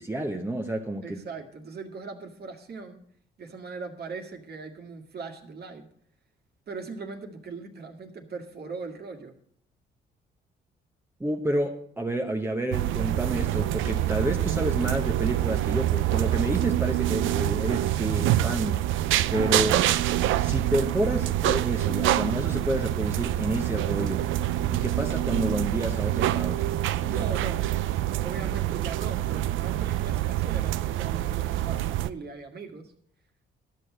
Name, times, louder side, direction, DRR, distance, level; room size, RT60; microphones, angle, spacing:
voice 1, 0.0-1.2 11.2-18.8 19.3-19.9 20.4-24.3 24.7-27.1, right 1 dB, 10° right, 2 dB, 1.0 m, -29 dB
voice 2, 1.0-3.0 3.4-5.9 6.7-9.3 27.0-27.7 28.2-32.9, right 4 dB, 55° right, 4 dB, 1.9 m, -39 dB
sound 1, 12.7-32.1, right 13 dB, 85° right, 0.5 m, -26 dB
12.5 x 6.4 x 7.6 m, 0.65 s
cardioid pair, 90°, 20 cm